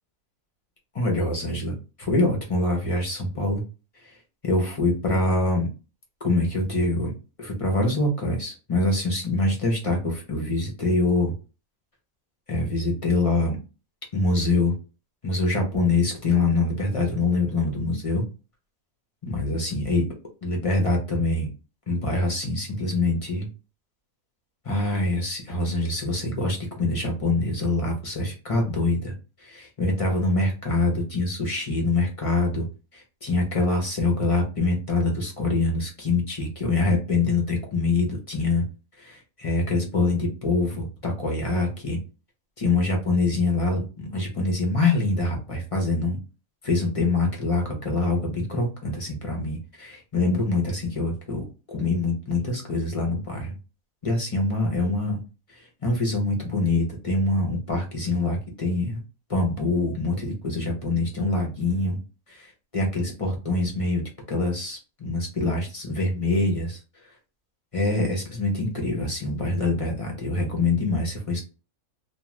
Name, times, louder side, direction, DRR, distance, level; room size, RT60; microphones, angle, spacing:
voice 1, 0.9-3.6 4.0-4.1 4.4-5.7 6.2-7.1 7.4-11.3 12.5-13.6 14.1-14.7 15.2-18.2 19.2-20.1 20.4-21.5 21.9-23.5 24.6-29.1 29.4-32.7 32.9-38.6 39.0-42.0 42.6-46.2 46.6-53.5 54.0-55.2 55.8-59.0 59.3-62.0 62.3-64.0 64.3-66.8 67.7-71.4, left 2 dB, 35° left, 1 dB, 0.5 m, -25 dB
2.4 x 2.4 x 3.0 m, 0.32 s
omnidirectional pair, 1.5 m